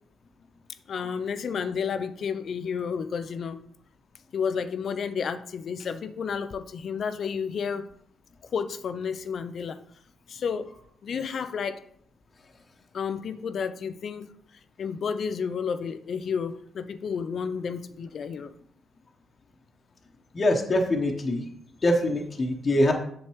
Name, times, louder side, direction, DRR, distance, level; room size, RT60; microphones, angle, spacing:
voice 1, 0.9-3.6 4.3-7.9 8.5-9.8 10.3-10.7 11.0-11.8 12.9-14.3 14.8-18.5, left 6 dB, 55° left, 0.6 m, -31 dB
voice 2, 20.3-21.4 21.8-22.9, left 1 dB, 40° left, 1.1 m, -23 dB
8.3 x 6.4 x 3.2 m
hypercardioid pair, 45°, 0 cm